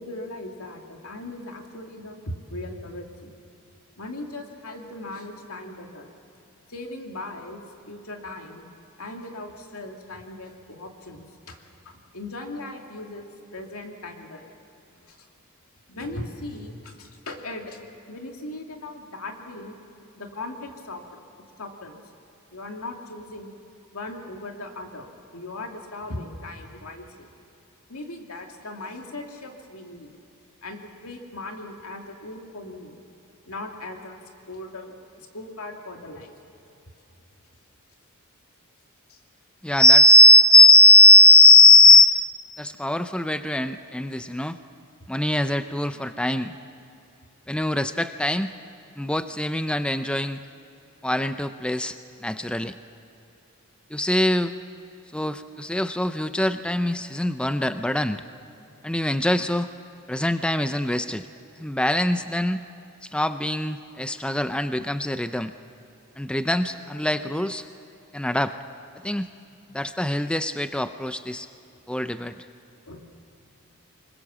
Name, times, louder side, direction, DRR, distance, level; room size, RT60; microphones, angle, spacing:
voice 1, 0.0-3.3 4.0-6.1 6.7-8.6 9.0-14.5 15.1-15.3 15.9-19.8 20.2-21.2 21.6-22.0 22.5-23.5 23.9-27.3 27.9-30.1 30.6-33.0 33.5-34.2 34.5-36.3 39.1-39.2 72.9-73.0, left 2 dB, 75° left, 3 dB, 2.6 m, -38 dB
voice 2, 39.6-42.3 42.6-44.6 45.1-46.5 47.5-48.5 49.0-50.4 51.0-52.8 53.9-54.5 55.1-58.2 58.8-59.7 60.1-61.3 61.6-62.6 63.0-65.5 66.2-67.6 68.1-68.6 69.0-69.3 69.7-71.5 71.9-72.5, left 2 dB, 5° left, 10 dB, 0.5 m, -19 dB
25.0 x 21.0 x 7.4 m, 2.8 s
head